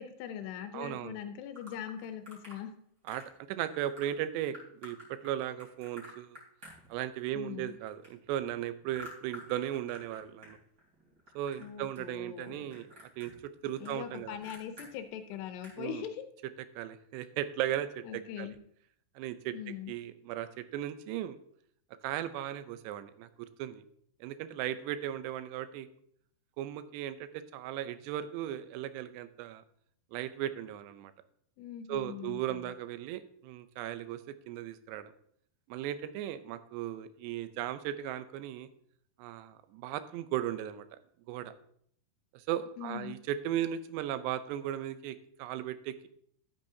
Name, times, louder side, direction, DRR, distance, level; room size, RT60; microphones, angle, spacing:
voice 1, 0.0-2.7 7.3-7.7 11.6-12.8 13.8-16.2 18.1-18.6 19.5-19.9 31.6-32.7 42.8-43.2, left 9 dB, 80° left, 8 dB, 2.8 m, -41 dB
voice 2, 0.7-1.2 3.1-3.2 3.5-5.0 5.2-6.4 6.9-10.6 11.4-13.3 13.6-14.4 15.8-16.0 16.8-18.5 19.2-21.4 22.0-23.8 24.2-25.9 26.6-29.6 30.1-31.1 31.9-34.2 34.5-35.1 35.7-38.7 39.2-40.9 41.3-41.5 42.3-46.1, right 11 dB, 85° right, 12 dB, 2.8 m, -37 dB
sound 1, 1.6-2.6 3.1-3.4 3.6-4.1 4.5-7.3 7.6-10.5 10.8-11.7 11.9-12.4 12.7-14.9 15.3-15.4 15.6-15.8, left 1 dB, 25° right, 3.3 m, -50 dB
12.0 x 8.7 x 2.7 m, 0.66 s
omnidirectional pair, 4.9 m